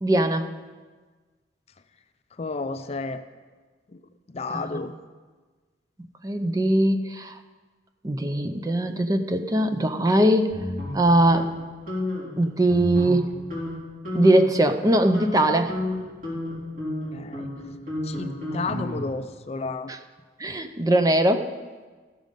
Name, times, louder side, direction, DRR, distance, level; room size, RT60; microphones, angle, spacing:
voice 1, 0.0-0.5 4.6-4.8 6.2-7.4 8.0-10.6 10.9-11.5 12.4-13.4 14.1-15.8 19.9-20.0 20.4-21.5, right 1 dB, 20° right, 7 dB, 0.5 m, -21 dB
voice 2, 2.4-3.2 3.9-4.0 4.3-4.9 17.1-17.5 18.0-19.9, left 3 dB, 35° left, 10 dB, 0.4 m, -32 dB
sound 1, 10.5-11.5 11.9-12.3 12.7-13.2 13.5-13.7 14.0-14.5 14.9-19.2, left 1 dB, 45° right, 3.8 m, -31 dB
14.5 x 6.3 x 5.2 m, 1.4 s
head